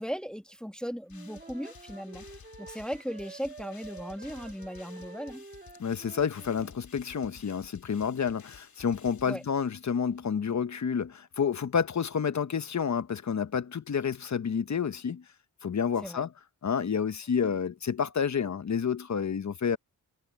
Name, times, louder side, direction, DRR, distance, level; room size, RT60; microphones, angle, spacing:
voice 1, 0.0-2.2 2.6-5.4 9.3-9.4 16.0-16.2, equal, ahead, 1.5 m, -37 dB
sound 1, 1.1-9.9, left 6 dB, 80° left, 3.7 m, -54 dB
Wind instrument woodwind instrument, 1.1-6.7, right 3 dB, 25° right, 1.8 m, -49 dB
voice 2, 5.8-15.2 15.6-16.3 16.6-19.8, left 7 dB, 50° left, 1.0 m, -29 dB
wide cardioid pair, 90°, 36 cm